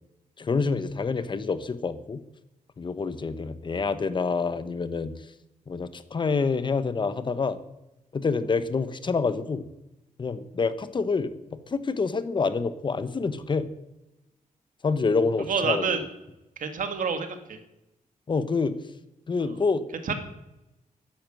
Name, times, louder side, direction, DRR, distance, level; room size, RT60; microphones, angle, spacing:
voice 1, 0.4-2.2 2.8-5.3 5.7-7.6 8.1-9.7 10.2-11.3 11.7-13.7 14.8-16.0 18.3-18.8 19.3-19.8 20.1-20.2, left 4 dB, 35° left, 13 dB, 1.0 m, -27 dB
voice 2, 15.5-16.0 16.6-17.6 19.4-19.5 19.9-20.1, right 5 dB, 80° right, 7 dB, 2.0 m, -28 dB
12.5 x 10.5 x 7.7 m, 0.92 s
wide cardioid pair, 130°, 14 cm